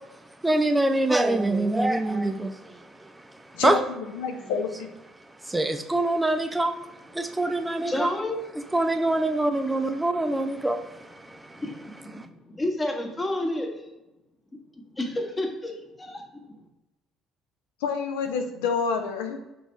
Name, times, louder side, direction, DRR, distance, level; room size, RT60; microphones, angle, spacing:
voice 1, 0.4-3.8 5.4-6.8 7.1-8.1 8.7-11.6 12.1-12.3, right 2 dB, 15° right, 7 dB, 0.4 m, -25 dB
voice 2, 3.5-4.9 17.8-19.4, left 5 dB, 80° left, 6 dB, 0.4 m, -28 dB
voice 3, 7.9-8.4 11.6-13.9 14.9-16.2, left 1 dB, 25° left, 3 dB, 1.0 m, -30 dB
4.1 x 3.4 x 3.0 m, 0.99 s
hypercardioid pair, 60°, 0 cm